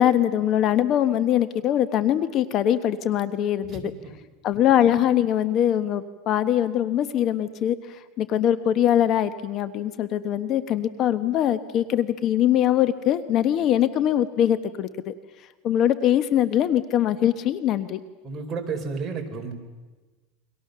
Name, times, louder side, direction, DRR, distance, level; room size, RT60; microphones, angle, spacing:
voice 1, 0.0-3.9 4.4-15.1 15.6-18.0, left 11 dB, 40° left, 13 dB, 1.1 m, -22 dB
voice 2, 18.2-19.5, right 5 dB, 25° right, 1 dB, 4.6 m, -31 dB
29.5 x 24.0 x 6.8 m, 1.2 s
supercardioid pair, 140°, 0 cm